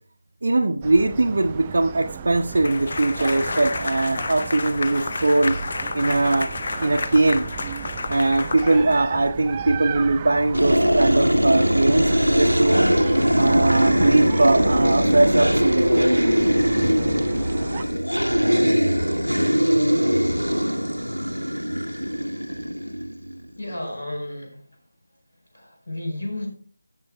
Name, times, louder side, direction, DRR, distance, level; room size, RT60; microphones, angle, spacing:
voice 1, 0.4-5.6 5.9-6.5 6.8-7.4 8.1-12.9 13.4-16.0, right 2 dB, 50° right, -1 dB, 0.8 m, -21 dB
sound 1, 0.8-17.8, right 7 dB, 20° right, 0.3 m, -36 dB
sound 2, 2.5-9.3, left 3 dB, 40° left, 0.6 m, -31 dB
sound 3, 10.5-23.4, equal, 90° right, 1.0 m, -21 dB
voice 2, 23.6-24.6 25.5-26.5, left 1 dB, 65° left, 2 dB, 4.6 m, -32 dB
19.5 x 7.9 x 2.2 m, 0.43 s
figure-of-eight pair, 160°, 0 cm